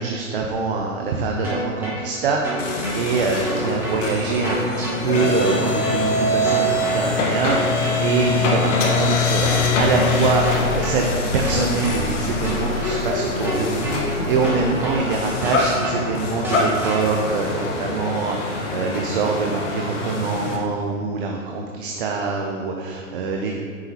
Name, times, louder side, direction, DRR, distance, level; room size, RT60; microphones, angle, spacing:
voice 1, 0.0-23.6, right 4 dB, 40° right, 1 dB, 0.7 m, -24 dB
sound 1, 1.4-2.0 2.4-3.0 3.4-4.0 4.4-5.0 5.4-6.0 6.4-7.0 7.4-8.0 8.4-9.0 9.4-10.0 10.4-11.0 11.4-12.0 12.4-13.0 13.4-14.0 14.4-15.0 15.4-16.0 16.4-17.0, right 2 dB, 5° right, 0.9 m, -30 dB
sound 2, 2.6-20.6, left 3 dB, 60° left, 1.5 m, -24 dB
8.8 x 6.8 x 3.0 m, 2.2 s
hypercardioid pair, 140°, 43 cm